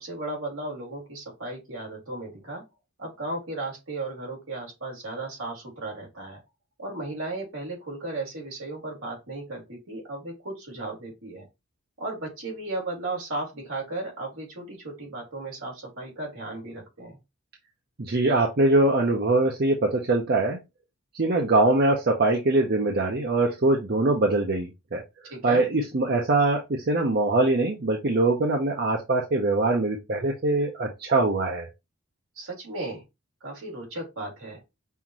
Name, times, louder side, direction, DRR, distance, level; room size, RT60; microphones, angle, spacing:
voice 1, 0.0-2.6 3.0-6.4 6.8-11.5 12.0-17.2 25.3-25.7 32.4-33.0 33.4-34.6, right 2 dB, 70° right, 2.6 m, -35 dB
voice 2, 18.0-20.6 21.1-25.0 25.4-31.7, right 2 dB, 45° right, 0.6 m, -23 dB
5.6 x 2.5 x 3.0 m
head